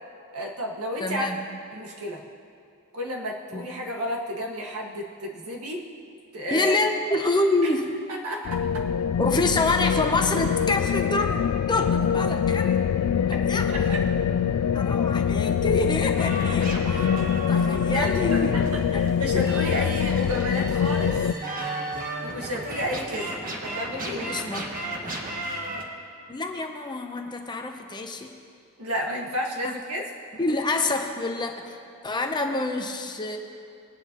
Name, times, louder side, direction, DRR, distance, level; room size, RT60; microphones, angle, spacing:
voice 1, 0.3-1.3 1.7-2.2 2.9-5.9 6.3-6.8 7.6-7.7 8.2-8.9 13.7-14.0 14.9-15.0 17.9-21.2 22.2-24.3 25.4-25.6 28.8-30.1, equal, 85° right, -1 dB, 1.8 m, -32 dB
voice 2, 1.0-1.4 3.5-3.6 6.5-7.9 9.2-12.7 13.3-13.9 14.7-18.6 19.2-19.5 24.2-25.2 26.3-28.4 29.6-29.8 30.4-31.8 32.0-33.4, left 2 dB, 20° left, 4 dB, 0.8 m, -27 dB
sound 1, 8.4-21.3, left 7 dB, 85° left, 0.3 m, -24 dB
sound 2, 16.1-25.8, right 2 dB, 40° right, 1.3 m, -34 dB
20.5 x 9.4 x 3.0 m, 2.6 s
head